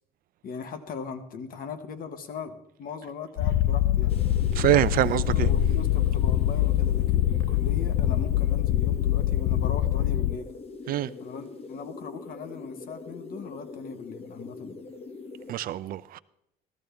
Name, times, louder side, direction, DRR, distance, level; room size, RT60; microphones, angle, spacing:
voice 1, 0.4-4.2 5.3-10.5 11.2-14.9, left 5 dB, 60° left, 1.3 m, -39 dB
Purr, 3.4-10.4, left 12 dB, 80° left, 0.5 m, -24 dB
sound 1, 4.1-15.5, left 3 dB, 35° left, 1.0 m, -43 dB
voice 2, 4.5-5.5 10.9-11.1 15.5-16.2, right 14 dB, 60° right, 0.4 m, -24 dB
14.0 x 13.5 x 3.4 m
cardioid pair, 110°, 17 cm